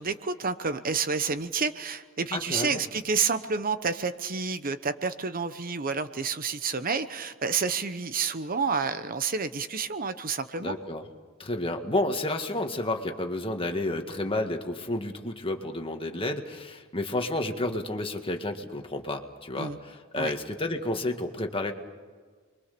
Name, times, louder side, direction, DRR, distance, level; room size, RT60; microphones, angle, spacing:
voice 1, 0.0-10.8 19.6-19.8 20.1-20.3, right 5 dB, 45° right, 11 dB, 1.0 m, -29 dB
voice 2, 2.3-2.8 10.6-11.0 11.4-21.7, left 2 dB, 25° left, 4 dB, 1.9 m, -31 dB
29.0 x 23.0 x 6.9 m, 1.5 s
head